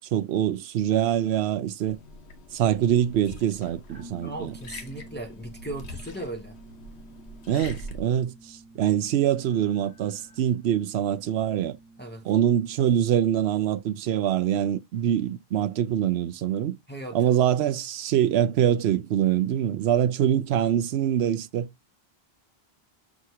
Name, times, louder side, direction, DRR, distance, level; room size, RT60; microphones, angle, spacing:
voice 1, 0.1-2.0 2.5-4.5 7.5-11.8 12.2-16.8 17.1-21.9, right 10 dB, 80° right, 0.8 m, -24 dB
Liquid, 1.9-8.0, left 1 dB, 90° left, 1.1 m, -43 dB
sound 1, 3.9-13.1, right 2 dB, 35° right, 1.0 m, -50 dB
voice 2, 4.2-6.6 12.0-12.2 16.9-17.3, right 2 dB, 10° left, 0.6 m, -37 dB
6.1 x 2.8 x 2.8 m
omnidirectional pair, 1.1 m